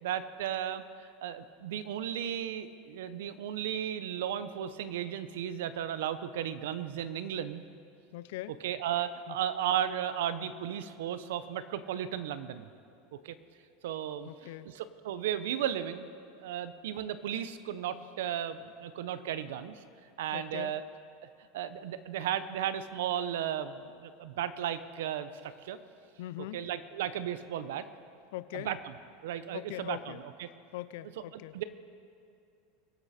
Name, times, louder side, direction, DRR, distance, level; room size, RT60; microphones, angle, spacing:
voice 1, 0.0-7.6 8.6-12.7 13.2-13.4 13.8-16.1 16.3-19.8 20.2-20.8 21.5-25.8 26.5-27.9 28.5-28.9 29.2-30.5 31.3-31.6, right 10 dB, 85° right, 13 dB, 0.7 m, -35 dB
voice 2, 8.1-8.5 9.3-9.4 14.2-14.7 20.3-20.7 26.2-26.6 28.3-28.7 29.5-30.2 30.7-31.6, left 16 dB, 75° left, 16 dB, 0.5 m, -41 dB
23.0 x 8.2 x 4.3 m, 2.5 s
supercardioid pair, 145°, 0 cm